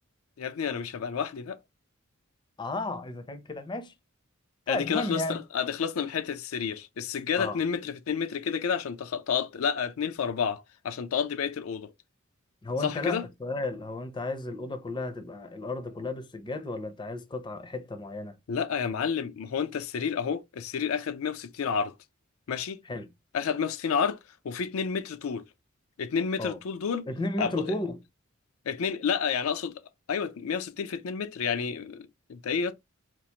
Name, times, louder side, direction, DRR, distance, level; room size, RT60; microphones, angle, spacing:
voice 1, 0.4-1.6 4.7-11.9 12.8-13.2 18.5-21.9 22.5-22.8 23.3-24.2 24.4-25.4 26.0-27.1 27.4-27.8 28.7-29.8 30.1-32.7, left 6 dB, 80° left, 0.4 m, -30 dB
voice 2, 2.6-3.9 4.7-5.4 7.4-7.6 12.6-18.4 22.9-23.1 26.4-26.6 27.1-28.0, left 2 dB, 20° left, 0.5 m, -33 dB
4.4 x 2.4 x 2.8 m
head